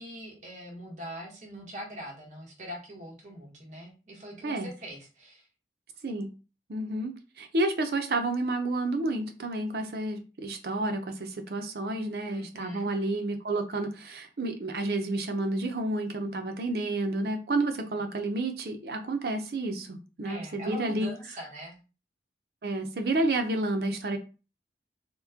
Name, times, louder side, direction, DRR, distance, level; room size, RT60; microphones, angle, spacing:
voice 1, 0.0-5.5 12.2-12.9 20.2-21.8, equal, 40° right, -1 dB, 1.0 m, -42 dB
voice 2, 6.7-21.1 22.6-24.2, right 2 dB, 60° right, 5 dB, 0.5 m, -30 dB
2.9 x 2.1 x 3.5 m, 0.32 s
head